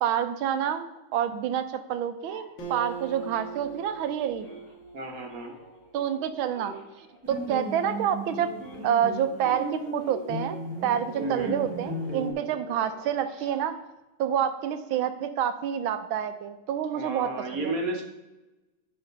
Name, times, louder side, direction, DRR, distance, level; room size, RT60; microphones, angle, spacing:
voice 1, 0.0-4.5 5.9-6.7 7.3-8.5 8.8-10.6 10.8-13.8 14.2-17.7, right 9 dB, 75° right, 10 dB, 1.5 m, -28 dB
sound 1, 2.3-4.1 4.4-13.9, equal, 25° left, 3.5 m, -47 dB
Acoustic guitar, 2.6-6.1, right 6 dB, 65° left, 2.1 m, -41 dB
voice 2, 4.9-5.5 11.2-11.5 13.4-13.5 16.9-18.0, right 2 dB, 45° right, 2 dB, 1.5 m, -32 dB
sound 2, 7.2-12.3, equal, 5° right, 1.7 m, -36 dB
11.0 x 4.4 x 5.2 m, 1.0 s
omnidirectional pair, 2.3 m